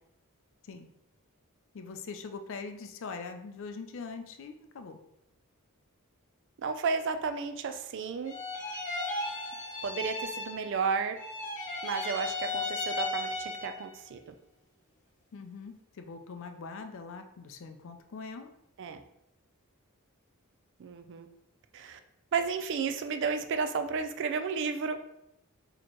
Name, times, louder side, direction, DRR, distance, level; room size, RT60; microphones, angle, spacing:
voice 1, 1.7-5.0 15.3-18.5, left 4 dB, 60° left, 7 dB, 0.4 m, -42 dB
voice 2, 6.6-8.4 9.8-11.2 11.8-14.3 18.8-19.0 20.8-21.3 21.7-22.0 22.3-25.0, right 5 dB, 55° right, 8 dB, 0.4 m, -32 dB
sound 1, 8.2-10.9 11.1-13.9, left 2 dB, 35° left, 0.9 m, -35 dB
4.2 x 2.9 x 3.0 m, 0.80 s
head